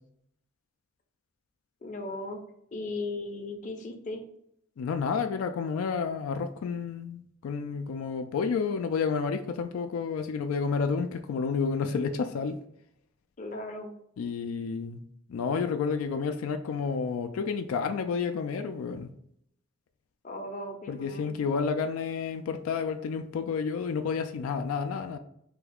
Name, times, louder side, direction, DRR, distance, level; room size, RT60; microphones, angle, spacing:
voice 1, 1.8-2.4 2.7-4.2 13.4-13.9 20.2-21.4, left 2 dB, 40° left, 3 dB, 0.6 m, -37 dB
voice 2, 4.8-12.6 14.2-15.0 15.3-19.1 20.9-25.2, left 5 dB, 85° left, 7 dB, 0.3 m, -30 dB
3.4 x 2.3 x 3.4 m, 0.72 s
head